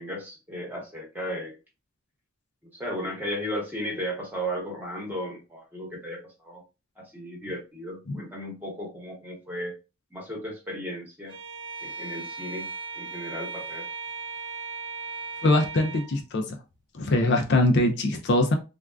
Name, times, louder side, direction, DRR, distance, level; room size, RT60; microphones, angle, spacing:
voice 1, 0.0-1.6 2.7-6.6 7.1-9.7 10.1-11.3 11.8-12.7 12.9-13.8, equal, 10° right, 1.1 m, -35 dB
Bowed string instrument, 11.3-16.2, right 4 dB, 60° right, 0.6 m, -37 dB
voice 2, 15.4-16.6 16.9-18.5, left 1 dB, 55° left, 0.5 m, -22 dB
3.5 x 2.3 x 2.3 m
head